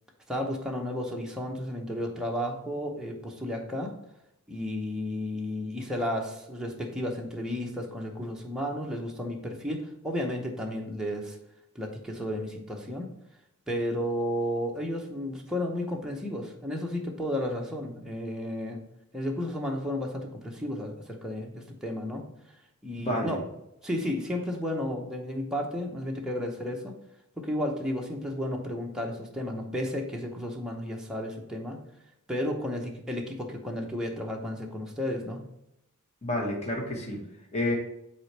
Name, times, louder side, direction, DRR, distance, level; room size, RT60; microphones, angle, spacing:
voice 1, 0.3-3.9 4.5-11.4 11.7-13.1 13.7-18.8 19.1-22.3 22.8-23.4 23.8-26.9 27.4-31.8 32.3-35.4, left 1 dB, 5° right, -1 dB, 0.8 m, -33 dB
voice 2, 23.0-23.4 36.2-37.2 37.5-37.7, left 1 dB, 30° left, 0 dB, 1.3 m, -29 dB
7.7 x 4.2 x 3.3 m, 0.82 s
head